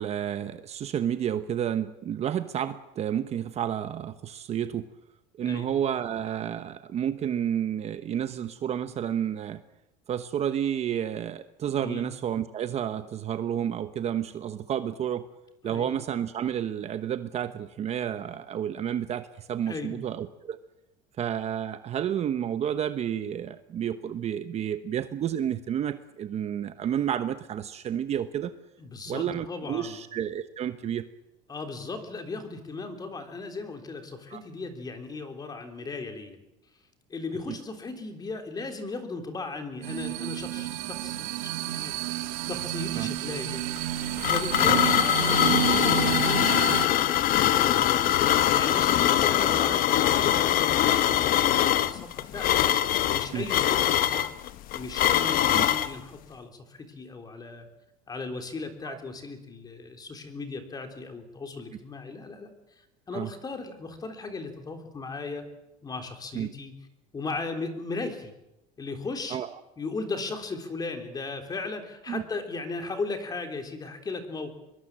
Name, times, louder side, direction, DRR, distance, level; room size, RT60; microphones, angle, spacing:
voice 1, 0.0-4.9 5.4-9.6 10.1-15.3 15.6-20.6 21.2-28.5 29.1-31.1 34.3-34.4 37.5-37.6 42.9-43.1 44.7-44.8 53.3-53.5 55.5-55.7 58.8-59.0 63.1-63.3 66.3-66.5 69.3-69.5 72.1-72.2, right 9 dB, 35° right, 10 dB, 1.0 m, -30 dB
voice 2, 5.4-5.7 11.8-12.1 15.6-15.9 19.7-20.0 28.8-30.0 31.5-36.4 37.1-43.7 44.2-52.6 53.1-54.3 54.7-57.7 58.1-62.5 63.1-65.5 65.8-66.7 67.1-68.3 68.8-69.4 69.8-74.5, left 3 dB, 20° left, 6 dB, 3.6 m, -37 dB
sound 1, 39.8-46.9, right 13 dB, 90° right, 1.6 m, -30 dB
sound 2, 43.8-55.9, left 12 dB, 45° left, 1.1 m, -23 dB
24.0 x 22.5 x 7.5 m, 0.90 s
cardioid pair, 145°, 20 cm